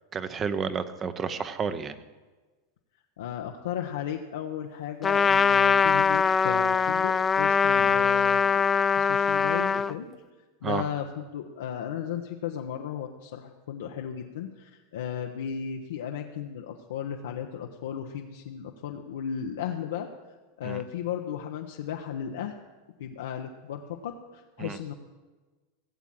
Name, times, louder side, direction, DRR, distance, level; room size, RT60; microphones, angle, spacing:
voice 1, 0.1-2.0 7.8-8.1 10.6-10.8 20.6-20.8 24.6-24.8, right 6 dB, 25° right, 12 dB, 0.9 m, -31 dB
voice 2, 3.2-8.7 8.9-10.1 10.6-20.1 20.6-22.6 23.0-24.9, left 9 dB, 80° left, 2 dB, 0.9 m, -35 dB
Trumpet, 5.0-9.9, left 6 dB, 20° left, 0.3 m, -22 dB
16.0 x 7.3 x 7.6 m, 1.3 s
supercardioid pair, 125°, 0 cm